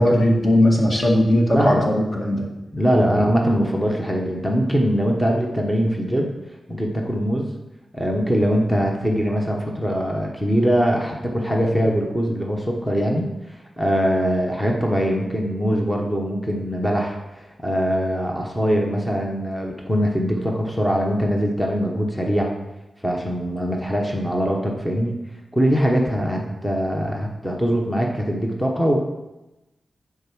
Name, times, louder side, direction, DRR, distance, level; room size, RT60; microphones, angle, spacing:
voice 1, 0.0-2.5 3.0-3.1, left 1 dB, 35° left, -1 dB, 2.0 m, -18 dB
voice 2, 1.5-1.9 2.7-6.3 6.7-7.5 7.9-13.3 13.8-22.5 23.0-25.2 25.5-29.0, equal, 5° left, 0 dB, 1.1 m, -22 dB
10.5 x 4.7 x 6.2 m, 1.0 s
wide cardioid pair, 135°, 0 cm